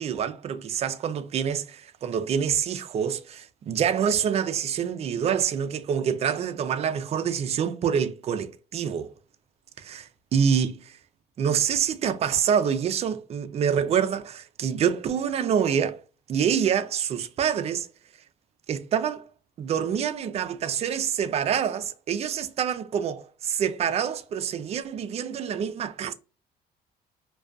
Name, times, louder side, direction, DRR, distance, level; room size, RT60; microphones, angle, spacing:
voice 1, 0.0-9.1 9.8-11.0 11.4-16.0 16.3-17.9 18.7-19.3 19.6-26.1, right 8 dB, 40° right, 0.4 m, -26 dB
2.4 x 2.2 x 2.3 m
cardioid pair, 110°, 17 cm